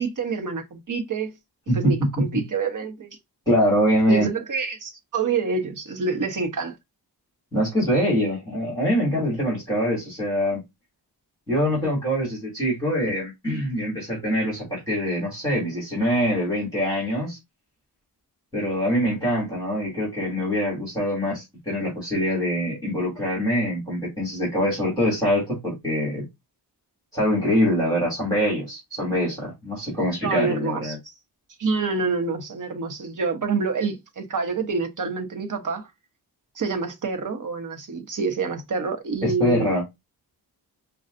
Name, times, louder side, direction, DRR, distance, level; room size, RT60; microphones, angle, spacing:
voice 1, 0.0-1.3 1.7-3.2 4.1-6.7 30.2-31.1 31.6-35.9 36.5-39.7, right 4 dB, 50° right, 1.0 m, -27 dB
voice 2, 1.7-2.2 3.5-4.3 7.5-10.6 11.5-17.4 18.5-26.3 27.1-31.0 39.2-39.8, equal, 10° left, 2.4 m, -24 dB
5.4 x 2.4 x 2.5 m
wide cardioid pair, 120°, 40 cm